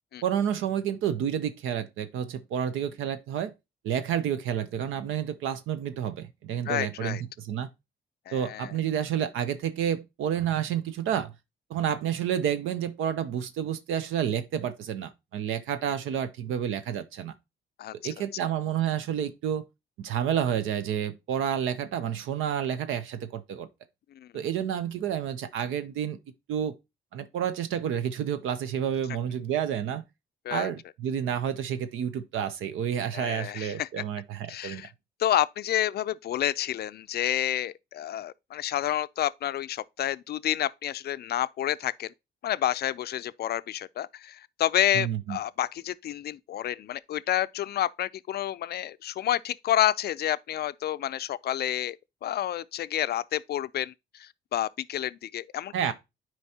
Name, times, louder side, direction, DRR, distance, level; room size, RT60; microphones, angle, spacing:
voice 1, 0.2-3.5 3.8-7.7 8.3-11.3 11.7-17.3 18.0-19.6 20.0-23.7 24.3-26.2 26.5-26.7 27.1-30.0 30.5-34.8 44.9-45.4 55.7-55.9, right 9 dB, 80° right, 0.6 m, -30 dB
voice 2, 6.7-7.2 8.3-8.7 17.8-17.9 24.1-24.3 30.5-30.7 33.1-33.9 34.5-34.9 35.2-42.1 42.4-52.0 52.2-53.9 54.2-55.9, left 12 dB, 55° left, 0.4 m, -29 dB
9.6 x 4.6 x 2.8 m
cardioid pair, 90°, 20 cm